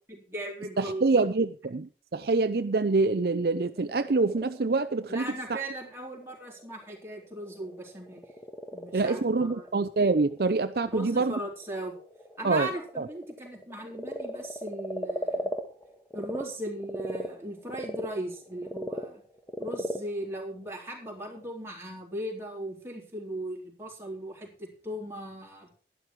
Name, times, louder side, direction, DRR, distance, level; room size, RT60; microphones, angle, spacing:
voice 1, 0.1-1.1 5.1-8.3 8.7-9.7 10.9-11.9 12.4-15.5 16.1-19.2 19.6-25.7, right 1 dB, 15° right, 3.8 m, -38 dB
voice 2, 0.8-5.6 8.9-11.3 12.4-12.7 13.0-13.1, right 3 dB, 60° right, 0.5 m, -26 dB
Frog, 3.6-16.4 16.8-21.4, equal, 10° left, 1.3 m, -39 dB
11.5 x 11.5 x 4.6 m
head